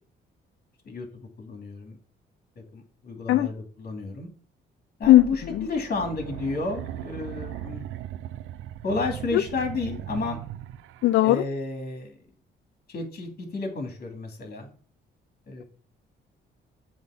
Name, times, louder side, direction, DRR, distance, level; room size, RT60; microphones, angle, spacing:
voice 1, 1.4-2.0 2.7-4.3 5.0-7.8 8.8-10.4 11.2-12.1 12.9-14.7 15.5-15.6, left 3 dB, 50° left, 3 dB, 2.7 m, -31 dB
sound 1, 5.0-8.3, left 1 dB, 30° left, 2.7 m, -47 dB
voice 2, 5.1-5.7 9.3-9.4 11.0-11.4, left 15 dB, 70° left, 12 dB, 0.5 m, -18 dB
sound 2, 5.9-11.2, right 12 dB, 85° right, 0.5 m, -38 dB
8.0 x 3.7 x 5.8 m, 0.43 s
cardioid pair, 90°, 20 cm